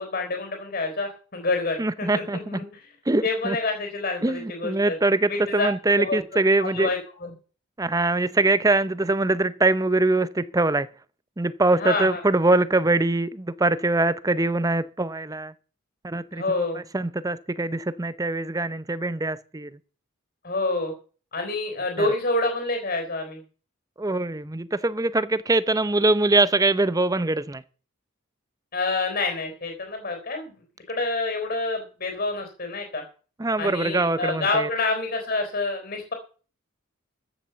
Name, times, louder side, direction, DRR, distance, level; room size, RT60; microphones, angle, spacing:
voice 1, 0.0-2.7 3.2-5.0 5.3-5.7 6.0-6.2 6.6-7.3 11.7-12.2 16.3-16.8 20.4-20.9 21.3-23.4 28.7-30.5 30.9-33.0 33.6-36.1, left 3 dB, 45° left, 3.9 m, -27 dB
voice 2, 1.8-2.6 3.1-3.6 4.2-6.9 7.8-10.9 11.4-15.5 16.0-19.7 22.0-22.1 24.0-27.6 33.4-34.7, right 2 dB, 15° right, 0.6 m, -23 dB
14.0 x 7.0 x 6.9 m
head